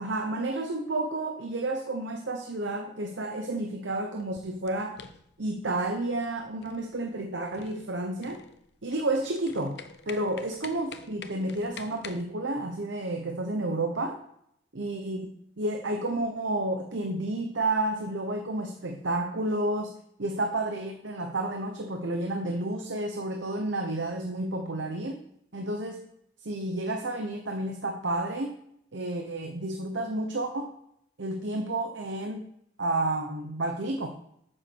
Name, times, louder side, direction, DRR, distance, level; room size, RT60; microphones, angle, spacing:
voice 1, 0.0-5.0 5.4-8.4 8.8-9.8 10.1-14.2 14.7-15.3 15.6-19.9 20.2-25.2 25.5-26.1 26.4-28.6 28.9-30.7 31.2-32.5 32.8-34.1, right 2 dB, 80° right, 4 dB, 1.0 m, -31 dB
sound 1, 4.2-12.2, left 5 dB, 60° left, 0.8 m, -47 dB
8.1 x 7.3 x 6.3 m, 0.74 s
head